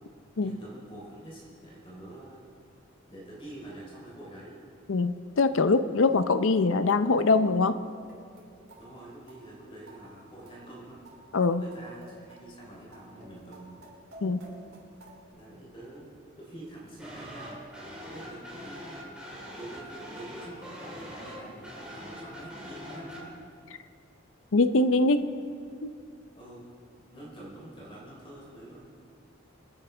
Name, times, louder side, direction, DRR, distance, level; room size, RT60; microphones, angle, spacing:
voice 1, 0.4-2.4 3.1-4.6 8.8-11.0 11.5-13.8 15.4-16.1 16.4-17.6 18.0-19.0 19.5-23.4 26.3-26.7 27.1-28.9, right 1 dB, 25° left, -5 dB, 3.5 m, -46 dB
voice 2, 4.9-7.8 11.3-11.7 14.2-14.4 24.5-25.3 25.8-25.9, left 3 dB, 80° left, 11 dB, 0.6 m, -23 dB
sound 1, 7.9-15.3, right 1 dB, 80° right, 3.5 m, -53 dB
sound 2, 17.0-23.3, equal, 5° right, 2.6 m, -43 dB
27.0 x 9.9 x 3.4 m, 2.3 s
head